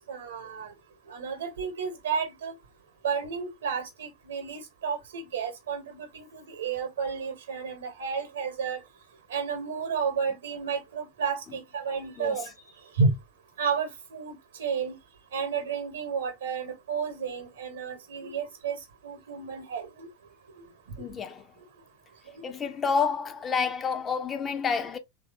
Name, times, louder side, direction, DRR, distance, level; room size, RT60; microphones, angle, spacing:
voice 1, 0.1-0.7 1.1-2.5 3.0-8.8 9.3-12.4 13.0-13.1 13.6-14.9 15.3-18.8 19.0-20.1, right 5 dB, 70° right, 0.9 m, -31 dB
voice 2, 21.0-21.5 22.4-25.0, left 5 dB, 25° left, 0.4 m, -29 dB
3.1 x 2.6 x 2.4 m
figure-of-eight pair, 85°, 0 cm